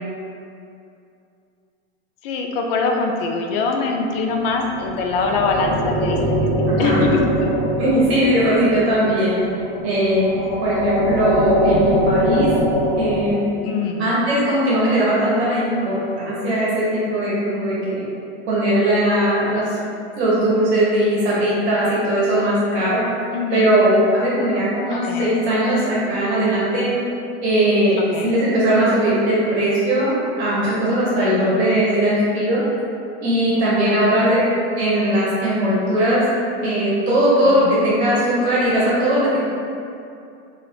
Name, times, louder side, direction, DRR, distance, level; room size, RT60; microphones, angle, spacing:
voice 1, 2.2-7.5 13.6-14.2 23.3-23.7 24.9-25.3 28.0-28.3 31.2-31.7 33.8-34.4 37.4-37.9, left 4 dB, 60° left, 2 dB, 0.4 m, -24 dB
sound 1, 4.5-13.3, equal, 20° left, 0.7 m, -22 dB
voice 2, 6.7-7.0 7.8-9.4 9.8-10.3 10.6-12.5 13.0-13.4 14.0-18.0 18.5-19.8 20.2-23.0 23.5-26.9 27.4-32.6 33.2-34.5 34.8-36.2 36.6-39.4, right 1 dB, 75° right, -7 dB, 0.9 m, -19 dB
2.4 x 2.4 x 3.5 m, 2.6 s
supercardioid pair, 160°, 33 cm